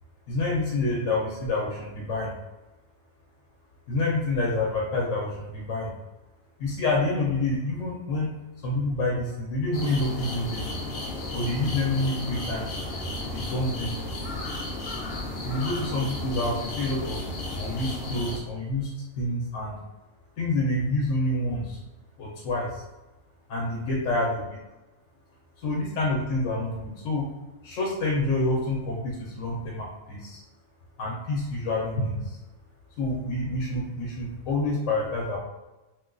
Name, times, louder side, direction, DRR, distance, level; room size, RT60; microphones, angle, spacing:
voice 1, 0.3-2.3 3.9-5.9 6.6-8.3 8.6-10.6 11.3-12.7 13.3-14.0 15.4-17.2 17.6-18.9 19.2-19.8 20.4-21.8 22.2-22.7 23.5-24.4 25.6-27.2 27.6-30.4 31.0-32.4 33.0-35.4, left 2 dB, 80° left, -2 dB, 1.0 m, -27 dB
sound 1, 9.7-18.4, left 1 dB, 60° left, 0.7 m, -33 dB
2.5 x 2.3 x 3.6 m, 1.1 s
omnidirectional pair, 1.3 m